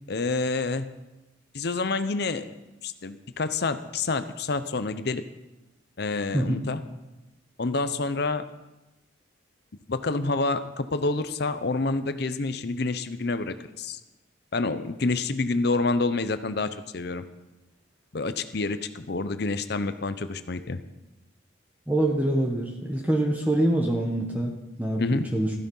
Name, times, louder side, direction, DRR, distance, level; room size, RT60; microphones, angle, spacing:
voice 1, 0.1-0.9 1.5-2.5 2.8-5.2 6.0-6.8 7.6-8.5 9.9-14.0 14.5-17.2 18.1-20.8 25.0-25.3, left 3 dB, 55° left, 11 dB, 0.7 m, -28 dB
voice 2, 21.9-25.5, right 1 dB, 10° right, 1 dB, 1.2 m, -25 dB
14.5 x 13.0 x 5.5 m, 1.0 s
head